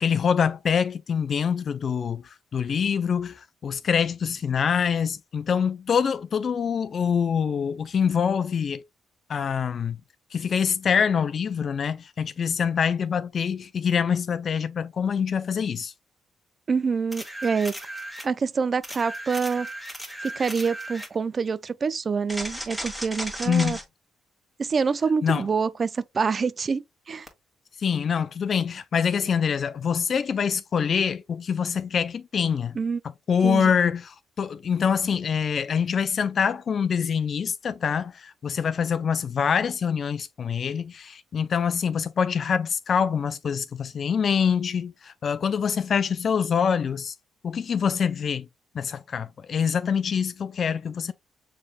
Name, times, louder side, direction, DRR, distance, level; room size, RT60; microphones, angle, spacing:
voice 1, 0.0-8.8 9.3-10.0 10.3-15.9 23.5-23.8 25.2-25.5 27.8-32.8 33.3-47.1 47.4-48.5 48.7-51.1, left 7 dB, 50° left, 0.5 m, -25 dB
voice 2, 16.7-17.8 18.2-19.7 20.2-23.8 24.6-27.3 32.8-33.0 33.4-33.7, right 5 dB, 40° right, 0.4 m, -26 dB
sound 1, 17.1-18.3 18.8-21.1 22.3-23.8 27.3-27.4, equal, ahead, 1.7 m, -36 dB
6.6 x 3.3 x 2.3 m
cardioid pair, 90°, 0 cm